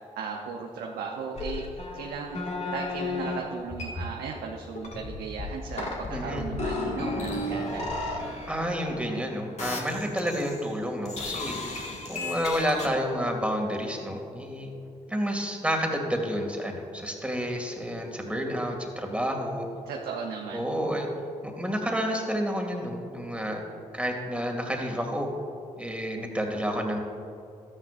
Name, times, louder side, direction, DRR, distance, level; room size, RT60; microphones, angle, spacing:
voice 1, 0.0-2.4 2.7-7.9 19.9-20.6, right 5 dB, 80° right, 0 dB, 0.7 m, -36 dB
sound 1, 1.3-3.4 3.7-4.4 4.8-9.2 9.6-10.7 11.1-12.9, left 2 dB, 50° left, 1.8 m, -34 dB
voice 2, 6.1-6.5 8.5-11.8 12.1-14.7 15.1-19.7 20.5-21.1 21.4-23.6 23.9-25.3 25.8-27.0, equal, 10° right, 1 dB, 2.1 m, -30 dB
13.0 x 9.7 x 2.5 m, 2.7 s
hypercardioid pair, 45°, 15 cm